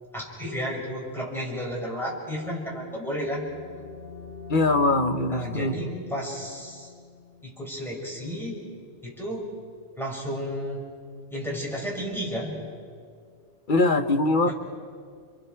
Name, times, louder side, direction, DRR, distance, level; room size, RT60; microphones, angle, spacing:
voice 1, 0.1-3.5 5.3-6.9 7.4-8.6 9.0-9.5 10.0-10.8 11.3-12.6 14.5-14.6, equal, ahead, -4 dB, 5.8 m, -32 dB
sound 1, 3.0-8.5, left 6 dB, 85° left, 6.1 m, -43 dB
voice 2, 4.5-5.8 13.7-14.5, left 2 dB, 45° left, 7 dB, 1.0 m, -22 dB
30.0 x 28.5 x 4.6 m, 2.1 s
omnidirectional pair, 1.2 m